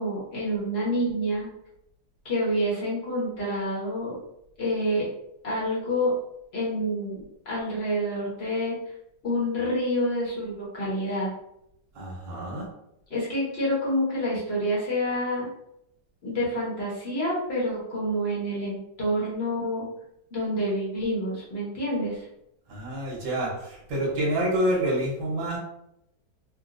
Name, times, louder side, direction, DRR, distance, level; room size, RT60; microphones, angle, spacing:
voice 1, 0.0-1.5 2.2-4.1 4.6-5.1 5.4-6.1 6.5-8.8 9.2-11.3 13.1-15.5 16.2-19.9 20.3-22.2, equal, 40° left, -6 dB, 1.2 m, -28 dB
voice 2, 11.9-12.7 22.7-25.6, right 1 dB, 75° right, -4 dB, 1.6 m, -27 dB
3.7 x 2.4 x 2.5 m, 0.80 s
omnidirectional pair, 2.0 m